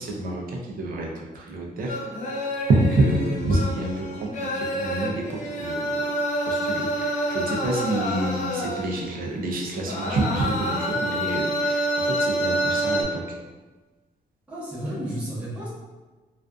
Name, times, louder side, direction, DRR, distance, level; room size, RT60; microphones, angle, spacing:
voice 1, 0.0-2.0 2.3-5.9 6.4-13.2, right 2 dB, 60° right, 0 dB, 0.5 m, -27 dB
sound 1, 1.9-9.2 9.7-13.0, equal, 50° left, 0.4 m, -27 dB
voice 2, 14.5-15.7, right 1 dB, 10° right, -11 dB, 0.9 m, -32 dB
2.4 x 2.4 x 2.2 m, 1.2 s
wide cardioid pair, 170°, 16 cm